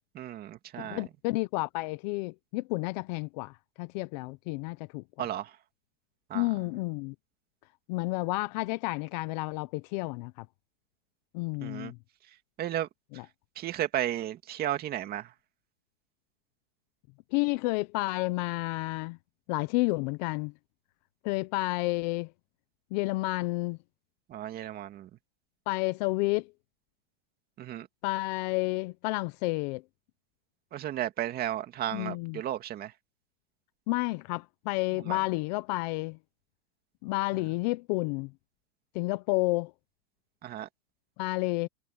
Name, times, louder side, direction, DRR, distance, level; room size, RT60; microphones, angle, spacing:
voice 1, 0.1-1.0 5.2-5.5 6.3-6.5 11.6-11.9 12.6-12.9 13.6-15.3 24.3-25.1 27.6-27.9 30.7-32.9 35.0-35.2 40.4-40.7, right 12 dB, 25° right, 2.4 m, -34 dB
voice 2, 0.8-3.5 3.8-5.3 6.3-7.1 7.9-10.3 11.3-12.0 13.1-13.3 17.3-19.2 19.5-20.5 21.2-22.3 22.9-23.8 25.7-26.5 28.0-29.8 31.9-32.4 33.9-36.2 37.0-38.3 38.9-39.7 41.2-41.7, left 23 dB, 35° left, 0.7 m, -30 dB
supercardioid pair, 150°, 38 cm